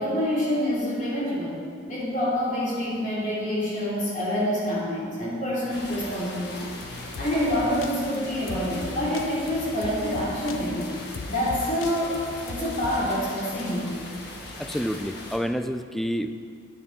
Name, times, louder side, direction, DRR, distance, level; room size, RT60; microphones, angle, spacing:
voice 1, 0.0-1.6 1.9-6.6 7.2-10.9 11.3-12.2 12.5-13.9, equal, 40° left, -6 dB, 3.0 m, -27 dB
sound 1, 5.7-15.4, left 2 dB, 55° left, 1.4 m, -40 dB
sound 2, 6.8-13.1, left 3 dB, 75° left, 0.5 m, -39 dB
voice 2, 14.6-16.3, equal, ahead, 9 dB, 0.3 m, -28 dB
9.7 x 9.6 x 4.5 m, 2.2 s
head